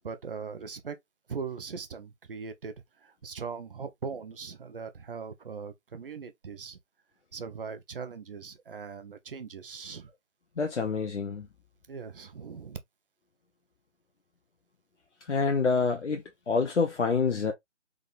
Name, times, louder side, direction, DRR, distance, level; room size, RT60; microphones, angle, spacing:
voice 1, 0.0-1.0 1.3-6.8 7.3-10.1 11.9-12.8, right 5 dB, 50° right, 0.9 m, -40 dB
voice 2, 10.6-11.5 15.2-17.5, left 4 dB, 75° left, 0.9 m, -27 dB
3.7 x 3.7 x 2.5 m
figure-of-eight pair, 160°, 36 cm